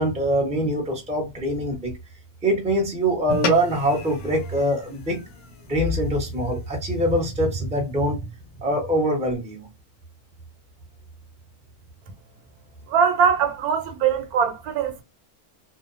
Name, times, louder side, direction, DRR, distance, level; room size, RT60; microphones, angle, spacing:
voice 1, 0.0-2.0 2.4-5.2 5.7-8.2 8.6-9.7, right 1 dB, 5° right, 0.6 m, -23 dB
sound 1, 3.3-7.9, left 3 dB, 80° left, 1.1 m, -34 dB
voice 2, 12.9-15.0, right 7 dB, 90° right, 1.2 m, -21 dB
2.7 x 2.1 x 2.5 m
omnidirectional pair, 1.6 m